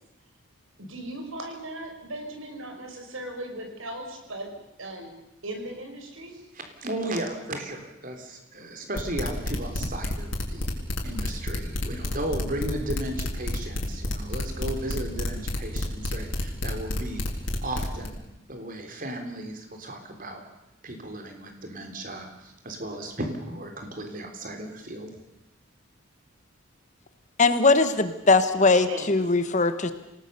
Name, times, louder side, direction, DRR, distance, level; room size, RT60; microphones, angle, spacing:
voice 1, 0.8-4.5 4.8-5.1 5.4-6.4 28.9-29.1, right 1 dB, 75° right, 4 dB, 5.1 m, -37 dB
voice 2, 6.5-10.7 11.0-17.2 17.6-18.2 18.5-20.4 20.8-25.1, right 1 dB, 40° right, 5 dB, 3.6 m, -35 dB
sound 1, 9.0-18.1, left 1 dB, 65° left, 4.0 m, -29 dB
voice 3, 27.4-29.9, left 3 dB, 35° left, 11 dB, 1.3 m, -20 dB
27.5 x 18.5 x 6.8 m, 0.91 s
head